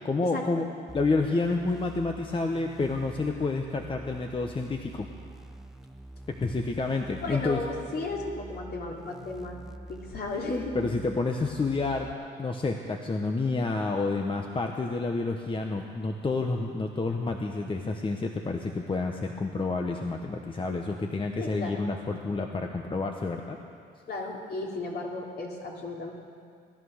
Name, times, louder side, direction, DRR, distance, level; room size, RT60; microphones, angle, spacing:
voice 1, 0.0-0.7 0.9-5.1 6.4-7.6 10.7-12.1 12.4-23.6, left 3 dB, 25° left, 3 dB, 1.0 m, -29 dB
sound 1, 0.9-12.1, right 2 dB, ahead, 0.8 m, -46 dB
voice 2, 7.2-9.6 9.9-10.8 21.4-21.8 24.1-26.1, left 3 dB, 55° left, -2 dB, 3.1 m, -34 dB
18.5 x 11.0 x 6.5 m, 2.2 s
cardioid pair, 90°, 20 cm